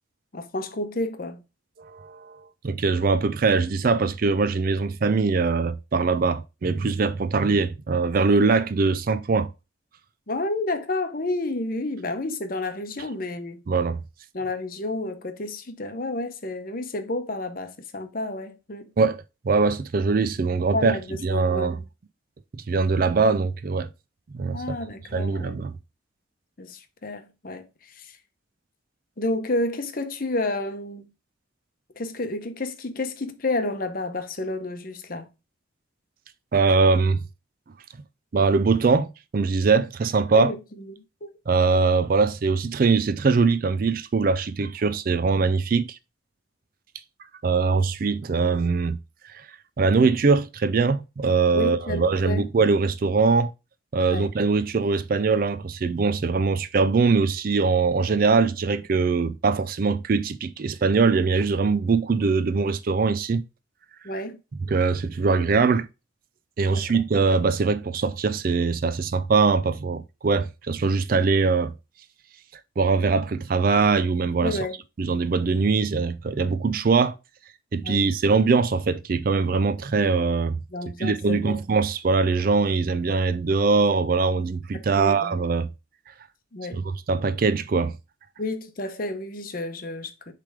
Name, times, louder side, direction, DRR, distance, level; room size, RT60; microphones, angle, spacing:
voice 1, 0.3-1.4 10.3-13.6 14.3-18.9 20.7-21.8 24.5-25.6 26.6-28.2 29.2-31.1 32.0-35.3 40.3-41.3 51.5-52.4 54.1-54.3 64.0-64.4 66.7-67.0 74.4-74.8 77.8-78.0 80.7-81.6 84.7-85.4 86.5-86.8 88.4-90.3, left 2 dB, 45° left, 0.8 m, -30 dB
voice 2, 1.8-9.5 13.7-14.0 19.0-21.8 22.5-23.9 24.3-24.6 25.1-25.7 36.5-37.2 38.3-40.5 41.5-46.0 47.4-49.0 49.8-53.5 53.9-63.4 64.7-65.9 66.6-71.7 72.8-74.6 75.0-77.2 77.7-80.6 81.0-85.7 86.7-87.9, right 4 dB, 45° right, 0.4 m, -22 dB
6.7 x 3.4 x 4.9 m
head